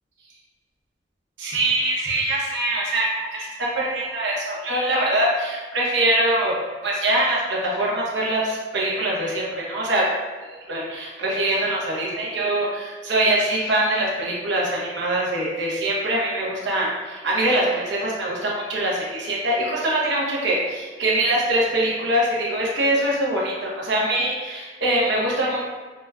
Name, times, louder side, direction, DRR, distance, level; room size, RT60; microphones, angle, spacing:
voice 1, 1.4-6.5 6.8-10.1 10.4-25.6, right 1 dB, 85° right, -4 dB, 0.9 m, -23 dB
4.9 x 2.1 x 2.3 m, 1.4 s
head